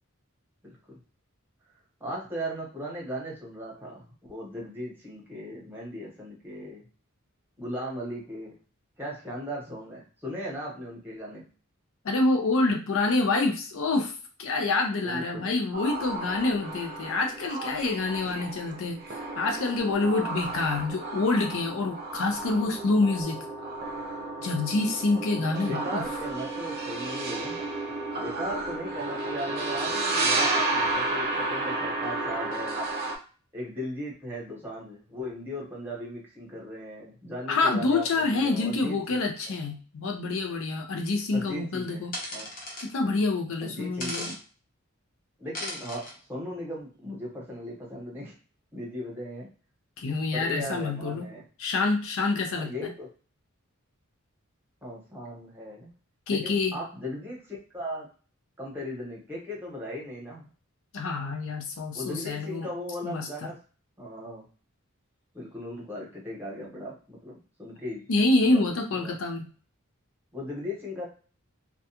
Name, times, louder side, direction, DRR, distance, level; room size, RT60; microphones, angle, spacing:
voice 1, 2.0-6.8 7.6-8.5 9.0-11.4 15.0-15.5 18.2-18.5 25.4-27.6 28.2-32.8 33.5-39.2 39.5-39.6 41.3-42.5 43.6-44.3 45.4-48.3 48.7-49.5 50.3-51.4 52.5-53.1 54.8-55.9 56.3-58.1 58.6-60.5 61.9-63.6 64.0-64.4 65.3-68.0 68.5-69.1 70.3-71.1, equal, 10° right, -4 dB, 0.9 m, -37 dB
voice 2, 12.0-14.1 14.4-19.0 19.4-23.4 24.4-26.0 37.5-42.1 42.8-44.3 50.0-51.3 51.6-52.9 56.3-56.8 60.9-62.7 63.0-63.5 68.1-69.5, left 3 dB, 65° left, 3 dB, 0.5 m, -27 dB
sound 1, 15.7-33.2, right 2 dB, 45° right, 0.5 m, -32 dB
sound 2, 42.1-42.9 44.0-44.4 45.5-46.1, left 1 dB, 45° left, 0.8 m, -36 dB
2.3 x 2.2 x 2.8 m, 0.38 s
head